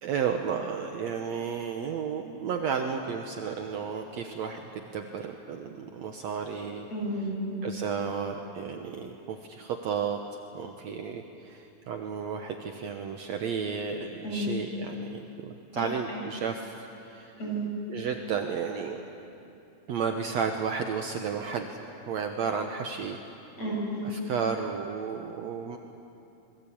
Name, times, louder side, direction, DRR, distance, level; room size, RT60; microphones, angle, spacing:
voice 1, 0.0-6.9 7.6-10.2 10.5-17.4 17.9-19.0 19.9-21.8 22.1-23.2 24.0-25.8, right 6 dB, 65° right, 4 dB, 2.1 m, -33 dB
voice 2, 6.9-7.6 14.2-14.5 15.7-16.2 17.4-17.7 23.6-24.0, right 1 dB, 55° left, -3 dB, 8.0 m, -32 dB
27.5 x 22.0 x 8.7 m, 2.8 s
omnidirectional pair, 3.7 m